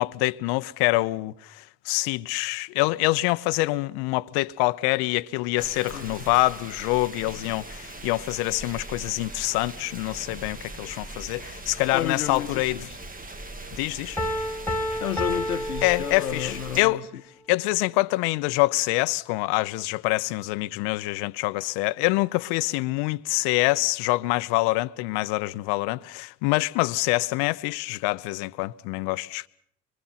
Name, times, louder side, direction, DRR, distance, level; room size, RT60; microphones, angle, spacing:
voice 1, 0.0-12.9 13.7-14.2 15.8-17.1 17.5-29.5, left 21 dB, 65° left, 0.8 m, -25 dB
sound 1, 5.6-16.8, right 2 dB, 20° right, 1.8 m, -40 dB
voice 2, 11.9-12.7 15.0-17.0, left 10 dB, 90° left, 0.9 m, -31 dB
Piano, 14.2-16.7, left 1 dB, 5° left, 2.2 m, -30 dB
25.5 x 23.5 x 5.8 m
figure-of-eight pair, 55°, 43 cm